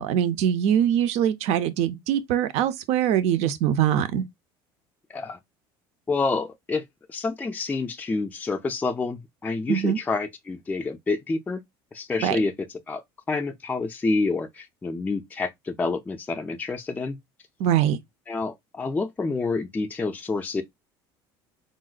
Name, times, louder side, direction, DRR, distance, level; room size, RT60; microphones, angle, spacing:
voice 1, 0.0-4.2 9.7-10.0 12.2-12.4 17.6-18.0, right 10 dB, 65° right, 0.5 m, -23 dB
voice 2, 6.1-11.6 11.9-17.2 18.3-20.6, left 3 dB, 15° left, 0.3 m, -28 dB
3.8 x 2.1 x 2.3 m
supercardioid pair, 90°, 12 cm